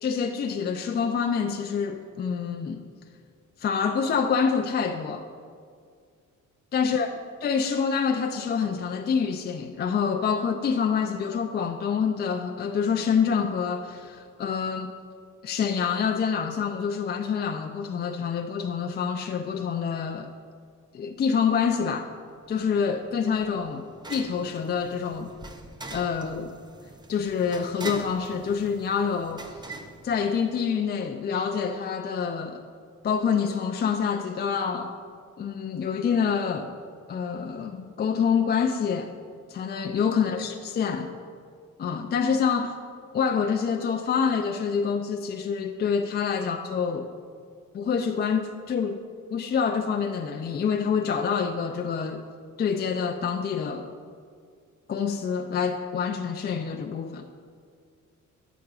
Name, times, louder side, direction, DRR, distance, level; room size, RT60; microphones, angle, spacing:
voice 1, 0.0-2.8 3.6-5.3 6.7-7.1 7.4-14.9 15.4-20.3 20.9-22.1 22.5-25.3 25.9-26.5 27.1-29.4 30.0-32.6 33.0-34.9 35.4-36.7 37.1-39.1 39.5-41.1 41.8-42.7 43.1-47.1 47.7-49.0 49.3-52.2 52.6-53.9 54.9-57.3, left 6 dB, 35° left, 5 dB, 0.4 m, -26 dB
sound 1, 22.5-30.8, right 2 dB, 15° right, 0.6 m, -43 dB
9.1 x 8.7 x 2.4 m, 2.1 s
cardioid pair, 90°, 30 cm